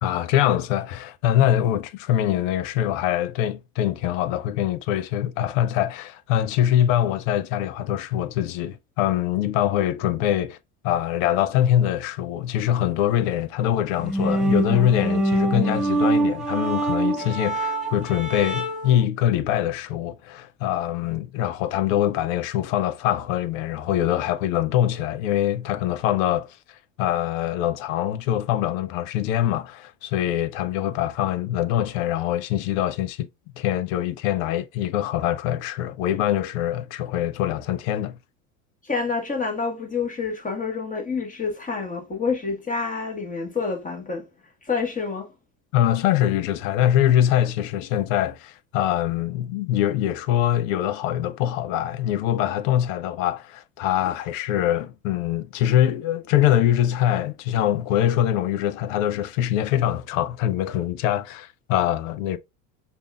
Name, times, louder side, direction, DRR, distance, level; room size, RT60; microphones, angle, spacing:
voice 1, 0.0-10.6 10.8-26.6 27.0-33.3 33.6-38.2 45.7-62.4, left 11 dB, 70° left, 0.7 m, -23 dB
sound 1, 14.0-19.0, right 2 dB, ahead, 1.9 m, -24 dB
voice 2, 38.8-44.3 44.6-45.3, left 4 dB, 20° left, 1.5 m, -28 dB
5.1 x 2.6 x 2.3 m
hypercardioid pair, 80°, 40 cm